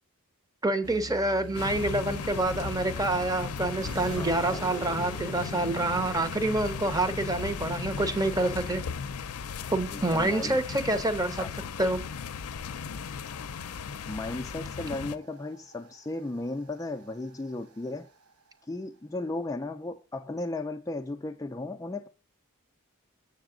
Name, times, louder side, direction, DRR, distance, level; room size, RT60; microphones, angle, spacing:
voice 1, 0.6-8.8 9.7-11.4 11.8-12.0, right 2 dB, 15° right, 0.7 m, -27 dB
sound 1, 0.8-18.6, right 1 dB, 90° right, 1.1 m, -48 dB
sound 2, 1.5-15.2, left 6 dB, 85° left, 0.5 m, -36 dB
voice 2, 4.2-4.6 9.9-10.6 11.4-11.5 14.1-18.1 18.7-22.1, left 2 dB, 15° left, 0.4 m, -35 dB
7.2 x 6.8 x 3.7 m
head